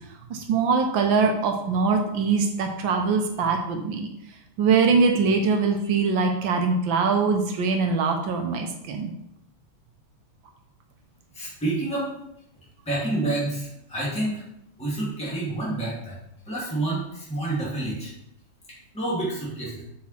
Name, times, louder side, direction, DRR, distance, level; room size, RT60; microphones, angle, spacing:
voice 1, 0.3-4.1 4.6-9.1, right 5 dB, 75° right, 3 dB, 1.5 m, -22 dB
voice 2, 11.3-12.1 12.8-14.4 14.8-16.2 16.5-18.1 18.9-19.8, right 2 dB, 5° left, -8 dB, 2.3 m, -28 dB
5.9 x 4.8 x 4.3 m, 0.80 s
omnidirectional pair, 2.2 m